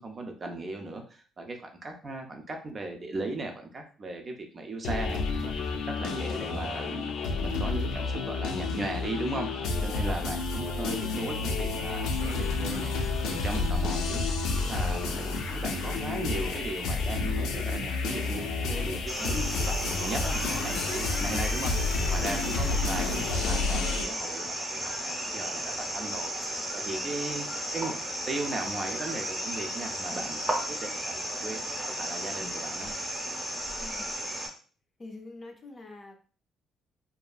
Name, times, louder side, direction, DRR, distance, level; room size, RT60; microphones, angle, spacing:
voice 1, 0.0-7.1 7.4-9.5 9.8-12.9 13.2-14.3 14.7-27.5 27.7-27.9 28.3-31.6 31.9-32.9, right 2 dB, 30° right, 3 dB, 0.4 m, -37 dB
sound 1, 4.8-24.1, left 3 dB, 85° left, 0.4 m, -30 dB
voice 2, 9.6-10.3 33.8-34.1 35.0-36.1, left 2 dB, 25° left, 3 dB, 0.5 m, -45 dB
sound 2, 19.1-34.5, right 1 dB, 15° right, 0.8 m, -34 dB
2.7 x 2.4 x 2.3 m, 0.40 s
cardioid pair, 125°, 0 cm